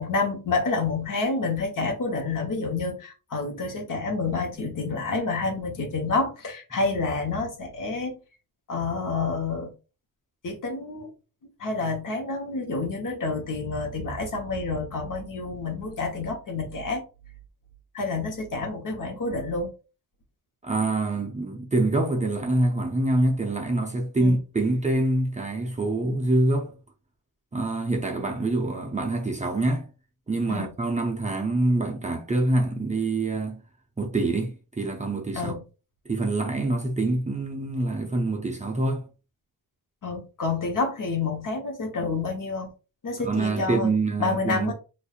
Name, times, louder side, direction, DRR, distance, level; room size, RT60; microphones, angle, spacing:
voice 1, 0.0-8.2 8.7-9.7 10.4-11.1 11.6-17.0 17.9-19.7 24.2-24.4 30.5-30.7 35.3-35.6 40.0-42.7 43.0-43.9 44.2-44.7, left 3 dB, 55° left, 1.1 m, -28 dB
voice 2, 20.6-26.7 27.5-29.9 30.3-33.6 34.0-35.5 36.1-39.1 43.2-44.7, right 2 dB, 20° right, 0.6 m, -25 dB
4.2 x 2.6 x 2.4 m
wide cardioid pair, 145°, 39 cm